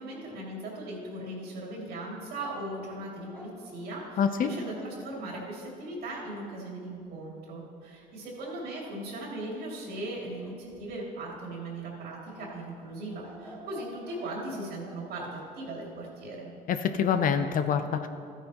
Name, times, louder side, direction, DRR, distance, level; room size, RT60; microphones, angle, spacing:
voice 1, 0.0-16.5, right 1 dB, 70° right, -2 dB, 2.7 m, -38 dB
sound 1, 2.4-5.0 10.4-11.2 12.3-15.0, right 1 dB, 5° left, 1.8 m, -49 dB
voice 2, 4.2-4.5 16.7-18.1, left 7 dB, 55° left, 9 dB, 0.6 m, -26 dB
13.5 x 9.1 x 3.0 m, 2.5 s
cardioid pair, 110°, 17 cm